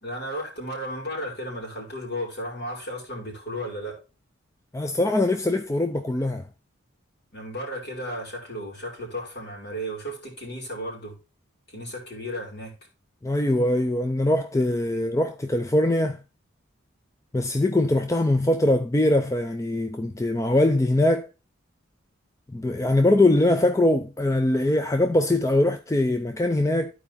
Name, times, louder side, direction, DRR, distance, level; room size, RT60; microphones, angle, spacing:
voice 1, 0.0-4.0 7.3-11.1 11.7-12.7, equal, 50° left, 3.4 m, -34 dB
voice 2, 4.7-6.4 13.2-16.2 17.3-21.3 22.5-26.9, left 1 dB, 15° left, 0.4 m, -22 dB
13.5 x 4.7 x 2.7 m
head